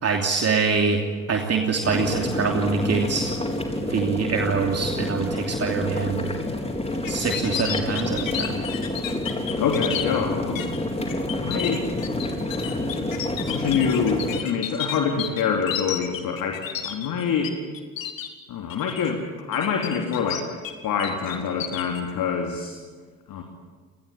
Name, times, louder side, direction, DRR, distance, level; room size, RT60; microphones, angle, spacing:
voice 1, 0.0-3.3 3.8-6.3 7.1-8.6, right 5 dB, 40° right, 2 dB, 2.9 m, -24 dB
sound 1, 1.8-14.4, left 1 dB, 15° left, 4.2 m, -28 dB
sound 2, 7.0-10.1 10.6-10.8 11.1-17.5 17.7-18.3 18.7-19.1 19.5-20.7 21.0-22.0, left 10 dB, 80° left, 2.0 m, -31 dB
voice 2, 9.6-10.8 11.3-11.8 12.4-12.8 13.5-17.5 18.5-19.2 19.5-20.5 20.8-22.8 23.3-23.4, left 6 dB, 60° left, 2 dB, 3.2 m, -26 dB
27.0 x 20.0 x 8.8 m, 1.5 s
figure-of-eight pair, 50°, 39 cm